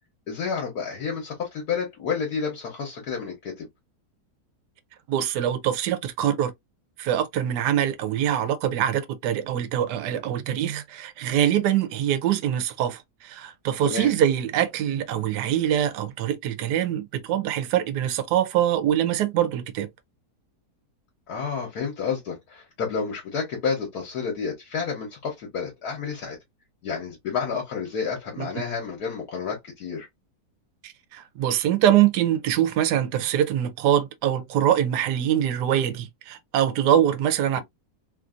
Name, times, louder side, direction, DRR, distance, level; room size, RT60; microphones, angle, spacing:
voice 1, 0.3-3.7 13.8-14.1 21.3-26.4 26.8-30.1 37.5-37.6, left 6 dB, 70° left, 1.4 m, -30 dB
voice 2, 5.1-6.5 7.0-19.9 28.4-28.6 30.8-37.6, right 10 dB, 85° right, 1.2 m, -24 dB
3.2 x 2.5 x 2.4 m
omnidirectional pair, 1.8 m